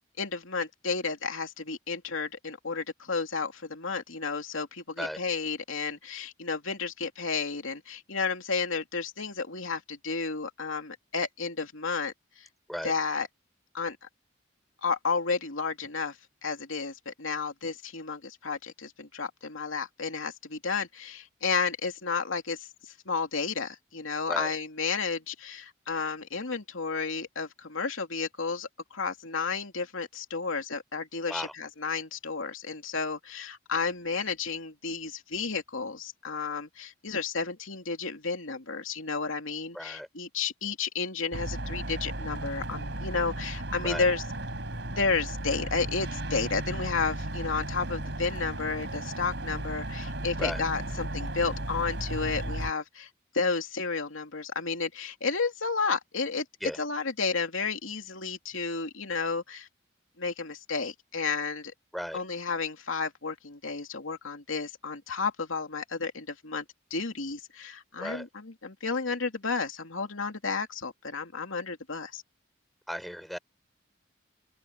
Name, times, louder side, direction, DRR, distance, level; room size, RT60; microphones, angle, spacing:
voice 1, 0.0-12.5 12.8-13.3 13.7-14.0 14.8-16.2 16.4-22.7 23.1-44.2 45.0-53.1 53.3-56.4 56.8-59.7 60.2-61.7 62.1-66.6 66.9-72.2, left 4 dB, 85° left, 2.9 m, -32 dB
voice 2, 39.7-40.1 43.8-44.1 50.4-50.6 56.6-56.8 61.9-62.2 68.0-68.3 72.9-73.4, equal, ahead, 3.6 m, -35 dB
sound 1, 41.3-52.7, right 1 dB, 60° right, 4.4 m, -35 dB
open air
head